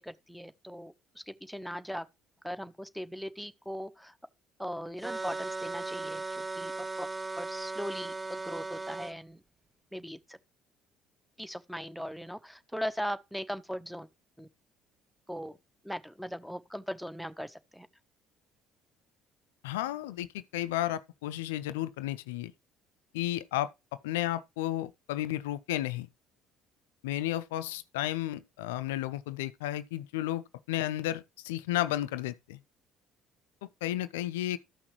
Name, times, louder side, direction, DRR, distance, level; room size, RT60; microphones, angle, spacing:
voice 1, 0.0-2.1 2.4-4.1 4.6-7.1 7.4-9.4 9.9-10.4 11.4-14.1 14.4-14.5 15.3-15.6 15.8-17.9, equal, ahead, 1.0 m, -39 dB
sound 1, 5.0-9.1, right 3 dB, 20° right, 0.4 m, -37 dB
voice 2, 19.6-22.5 23.1-23.7 24.0-26.1 27.0-32.6 33.6-34.6, left 14 dB, 75° left, 0.4 m, -33 dB
14.0 x 5.9 x 3.1 m
figure-of-eight pair, 50°, 0 cm